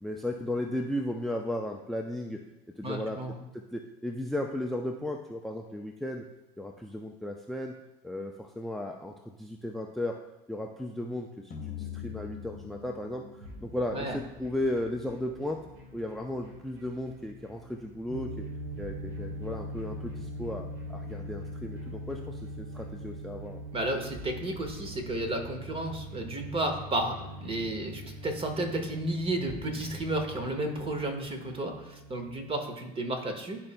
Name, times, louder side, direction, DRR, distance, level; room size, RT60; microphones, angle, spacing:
voice 1, 0.0-2.4 2.8-3.2 3.5-6.2 6.6-7.7 8.0-10.2 10.5-15.6 15.9-18.5 18.8-23.6, left 1 dB, ahead, 2 dB, 0.5 m, -35 dB
voice 2, 2.8-3.4 13.9-14.2 23.7-27.1 27.4-33.6, right 1 dB, 30° right, 4 dB, 1.4 m, -32 dB
sound 1, 11.5-15.9, left 8 dB, 45° left, 1.0 m, -44 dB
sound 2, 13.4-30.4, left 1 dB, 70° right, 1.9 m, -49 dB
sound 3, 18.1-32.5, equal, 50° right, 1.4 m, -42 dB
12.5 x 4.3 x 2.2 m, 0.93 s
supercardioid pair, 85°, 19 cm